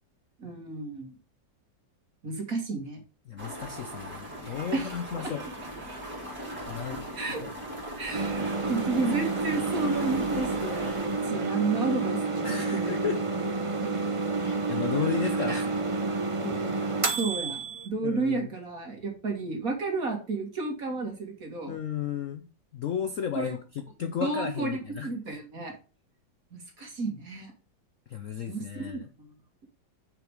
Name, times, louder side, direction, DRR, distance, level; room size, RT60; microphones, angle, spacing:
voice 1, 0.4-1.2 2.2-3.0 4.7-4.9 5.2-5.3 7.2-7.4 8.0-12.9 13.8-14.0 15.5-15.6 16.4-21.8 23.3-23.6 24.2-25.7 26.5-27.5 28.5-29.3, right 3 dB, 45° right, 3 dB, 2.7 m, -32 dB
voice 2, 3.3-5.4 6.7-7.5 12.4-13.2 14.7-15.7 18.0-18.5 21.7-22.5 22.7-25.4 26.8-26.9 28.1-29.1, left 8 dB, 60° left, 9 dB, 0.8 m, -34 dB
sound 1, 3.4-11.3, equal, 5° right, 3.6 m, -39 dB
sound 2, 3.5-17.9, right 4 dB, 90° right, 2.3 m, -50 dB
sound 3, 8.1-17.9, right 3 dB, 30° right, 0.6 m, -29 dB
7.4 x 6.1 x 4.9 m, 0.34 s
omnidirectional pair, 2.1 m